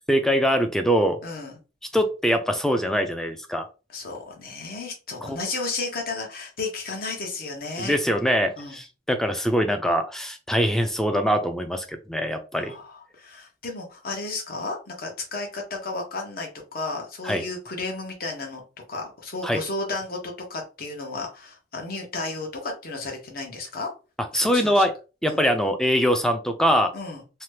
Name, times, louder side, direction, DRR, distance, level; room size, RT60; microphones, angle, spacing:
voice 1, 0.1-1.2 1.9-3.7 5.3-5.4 7.8-12.7 17.2-17.4 19.4-19.6 24.3-24.9 25.2-26.9, equal, 5° left, 6 dB, 0.4 m, -23 dB
voice 2, 1.2-1.6 3.9-8.0 8.6-8.8 12.5-18.6 18.9-23.9 24.3-24.8 25.3-25.4 26.9-27.2, left 3 dB, 55° left, 1 dB, 1.0 m, -33 dB
2.9 x 2.2 x 3.3 m, 0.32 s
head